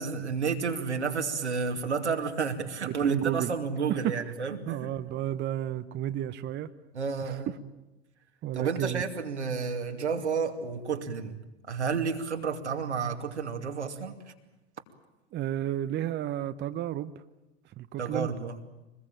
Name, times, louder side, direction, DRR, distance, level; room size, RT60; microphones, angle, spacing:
voice 1, 0.0-4.9 6.9-7.5 8.5-11.4 11.7-14.2 18.0-18.6, right 5 dB, 90° right, 4 dB, 2.6 m, -31 dB
voice 2, 2.8-3.5 4.7-6.7 7.3-7.4 8.4-9.0 15.3-17.1 17.8-18.3, right 12 dB, 30° right, 11 dB, 1.0 m, -32 dB
25.0 x 21.0 x 9.0 m, 1.0 s
hypercardioid pair, 90°, 33 cm